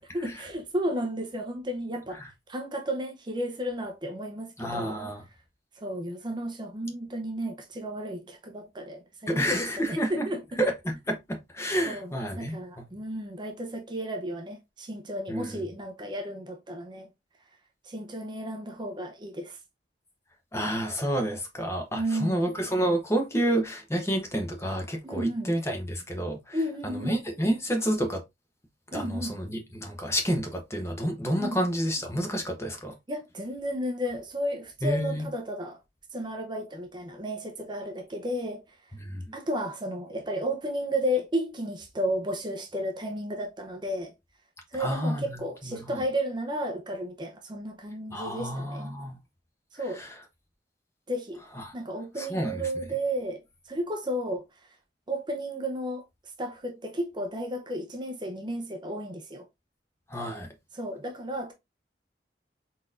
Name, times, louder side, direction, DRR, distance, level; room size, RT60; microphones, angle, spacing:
voice 1, 0.1-2.2 2.5-5.0 5.8-10.6 11.9-17.1 17.8-19.6 21.9-22.5 25.0-25.5 26.5-27.2 28.9-29.4 31.4-31.6 33.1-35.8 36.1-38.8 39.3-44.1 44.7-49.0 49.7-50.0 51.1-51.4 51.7-54.4 55.1-56.0 56.4-59.5 60.7-61.5, equal, 25° right, 0.6 m, -33 dB
voice 2, 4.6-5.2 9.3-10.3 10.6-12.6 15.3-15.6 20.5-26.6 26.8-28.2 28.9-32.9 34.8-35.3 39.0-39.2 44.8-45.3 48.1-49.2 50.0-50.1 52.2-52.6 60.1-60.5, equal, 15° left, 0.9 m, -29 dB
4.0 x 4.0 x 2.5 m
head